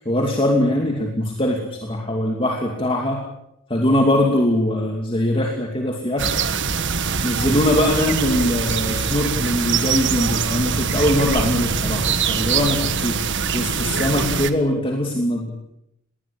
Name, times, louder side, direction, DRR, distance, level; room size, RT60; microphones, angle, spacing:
voice 1, 0.0-3.2 3.7-6.3 7.2-13.2 13.5-15.5, left 1 dB, 25° left, 1 dB, 2.7 m, -21 dB
sound 1, 6.2-14.5, right 5 dB, 55° right, 1.6 m, -23 dB
21.0 x 20.0 x 8.7 m, 0.80 s
head